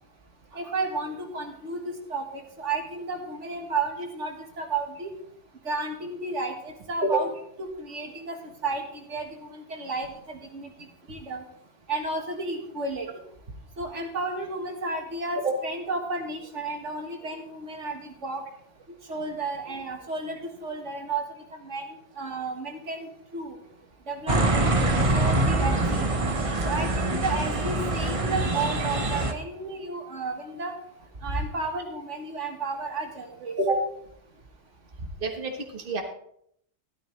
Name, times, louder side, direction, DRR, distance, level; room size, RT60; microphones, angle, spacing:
voice 1, 0.5-5.1 5.7-7.3 7.6-11.4 11.9-13.1 13.8-18.4 19.1-21.2 21.5-23.6 24.1-24.7 25.1-26.1 26.6-30.7 31.2-33.5, right 3 dB, 80° right, 2 dB, 1.9 m, -32 dB
sound 1, 24.3-29.3, right 2 dB, 30° right, 0.9 m, -24 dB
voice 2, 35.0-36.0, right 2 dB, 50° right, 2 dB, 1.6 m, -27 dB
13.0 x 12.5 x 3.2 m, 0.70 s
omnidirectional pair, 1.2 m